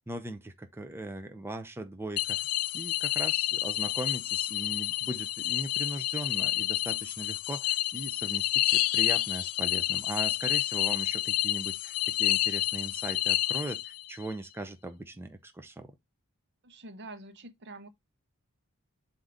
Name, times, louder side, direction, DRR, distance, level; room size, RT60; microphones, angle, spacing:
voice 1, 0.1-2.4 2.7-16.0, right 1 dB, 10° right, 0.7 m, -39 dB
sound 1, 2.2-14.1, left 16 dB, 85° left, 0.4 m, -29 dB
voice 2, 16.6-17.9, right 2 dB, 50° right, 1.0 m, -46 dB
7.7 x 2.8 x 5.1 m
head